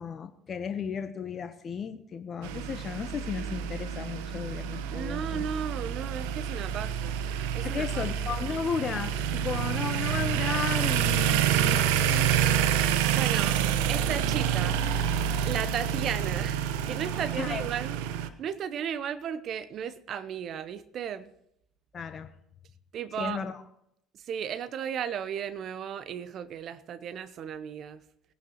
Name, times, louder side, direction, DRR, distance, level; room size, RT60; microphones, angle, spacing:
voice 1, 0.0-5.4 7.6-12.6 17.1-17.6 21.9-22.3 23.2-23.6, left 6 dB, 40° left, 7 dB, 1.0 m, -34 dB
sound 1, 2.4-18.3, right 9 dB, 80° right, 1.0 m, -28 dB
voice 2, 4.9-7.2 7.5-8.0 13.1-13.6 13.9-14.8 15.4-18.0 18.4-21.3 22.9-23.4 24.1-28.0, right 8 dB, 50° right, 15 dB, 0.9 m, -35 dB
20.5 x 11.0 x 3.1 m, 0.76 s
supercardioid pair, 80°, 0 cm